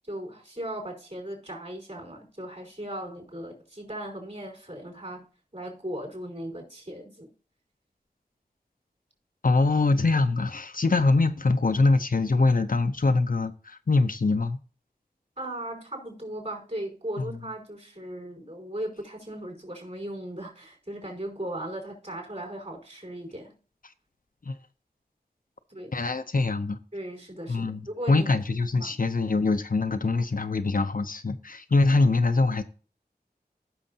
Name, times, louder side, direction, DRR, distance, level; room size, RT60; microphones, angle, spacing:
voice 1, 0.0-5.2 5.5-7.3 15.4-23.5 25.7-26.0 26.9-28.3 28.8-28.9, right 1 dB, 45° right, 5.0 m, -37 dB
voice 2, 9.4-14.6 17.2-17.3 24.4-24.6 25.9-26.8 27.5-32.6, left 3 dB, 60° left, 0.6 m, -23 dB
15.5 x 6.3 x 2.8 m
wide cardioid pair, 55°, 16 cm